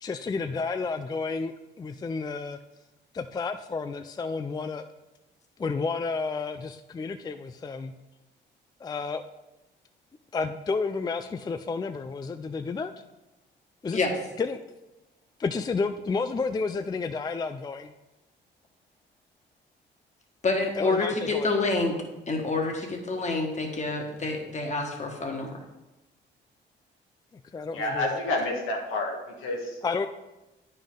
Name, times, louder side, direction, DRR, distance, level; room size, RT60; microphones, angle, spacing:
voice 1, 0.0-2.6 3.1-4.8 5.6-7.9 8.8-9.2 10.3-12.9 13.8-14.1 14.4-14.6 15.4-17.9 20.8-21.5 27.5-28.2 29.8-30.1, left 4 dB, 20° left, 9 dB, 0.3 m, -31 dB
voice 2, 20.4-22.0 22.3-25.5, left 3 dB, 35° left, 2 dB, 1.5 m, -27 dB
voice 3, 27.7-29.1 29.4-29.8, left 2 dB, 90° left, 1 dB, 1.5 m, -29 dB
9.0 x 5.4 x 3.7 m, 1.0 s
cardioid pair, 90°, 20 cm